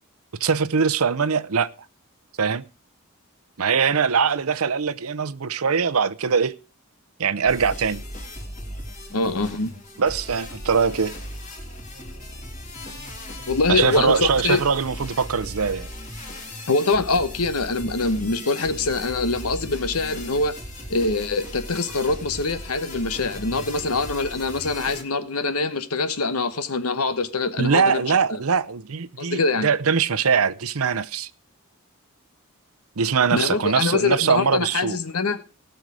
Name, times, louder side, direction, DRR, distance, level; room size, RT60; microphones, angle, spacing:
voice 1, 0.4-1.7 2.4-2.7 3.6-6.5 7.2-8.0 10.0-11.1 13.7-15.9 27.6-31.3 33.0-35.0, right 6 dB, 80° right, 0.7 m, -22 dB
sound 1, 7.4-25.0, left 1 dB, 35° left, 3.4 m, -37 dB
voice 2, 9.1-9.7 13.5-14.6 16.7-20.5 20.9-28.4 29.2-29.7 33.3-35.4, left 3 dB, 90° left, 1.2 m, -24 dB
18.0 x 6.5 x 4.8 m
head